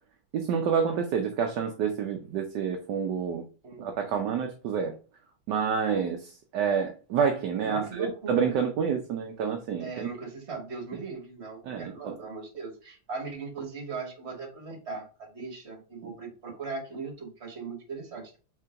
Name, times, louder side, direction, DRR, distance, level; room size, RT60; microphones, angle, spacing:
voice 1, 0.3-3.4 3.8-5.0 5.5-10.1 11.7-12.1, right 6 dB, 70° right, 1.1 m, -28 dB
voice 2, 3.6-4.0 7.6-8.6 9.8-18.4, right 4 dB, 35° right, 1.7 m, -39 dB
3.8 x 3.8 x 3.3 m
omnidirectional pair, 2.3 m